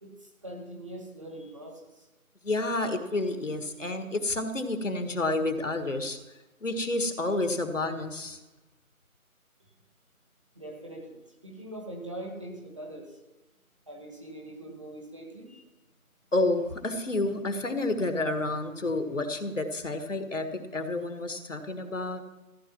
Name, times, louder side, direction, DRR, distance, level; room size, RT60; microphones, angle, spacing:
voice 1, 0.0-2.1 10.5-13.2 13.9-15.6, right 1 dB, 20° right, 0 dB, 1.6 m, -42 dB
voice 2, 2.4-6.2 6.6-8.4 16.3-22.2, left 2 dB, 60° left, 7 dB, 1.6 m, -30 dB
14.5 x 9.9 x 5.9 m, 1.0 s
figure-of-eight pair, 175°, 43 cm